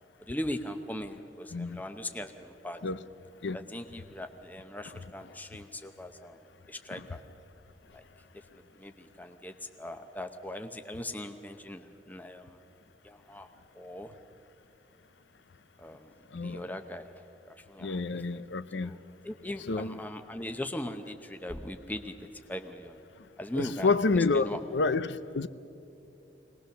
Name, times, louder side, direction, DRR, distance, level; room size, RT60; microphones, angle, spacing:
voice 1, 0.3-2.8 3.5-6.4 6.7-7.2 7.9-8.0 8.3-12.6 13.0-13.5 13.7-14.1 15.8-16.1 16.4-17.1 17.4-18.4 18.8-19.0 19.2-23.0 23.4-24.6, left 1 dB, 10° left, 0.7 m, -40 dB
voice 2, 17.8-18.9 19.7-19.9 23.6-25.5, left 3 dB, 80° left, 0.6 m, -28 dB
22.5 x 19.5 x 6.6 m
head